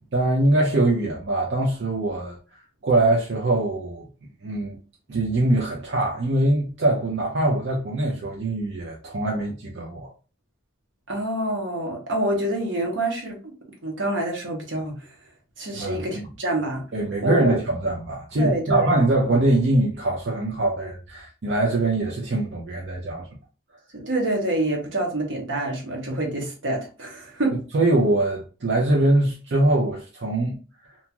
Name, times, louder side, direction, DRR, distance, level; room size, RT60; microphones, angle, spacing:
voice 1, 0.1-2.4 2.8-4.1 4.4-4.8 5.1-10.1 15.7-16.2 16.9-23.3 27.7-30.5, right 2 dB, 65° right, 0.5 m, -23 dB
voice 2, 11.1-13.5 13.8-15.0 15.6-16.8 17.2-17.5 18.4-18.9 24.0-27.6, right 1 dB, 85° right, 1.0 m, -26 dB
2.7 x 2.3 x 2.8 m
head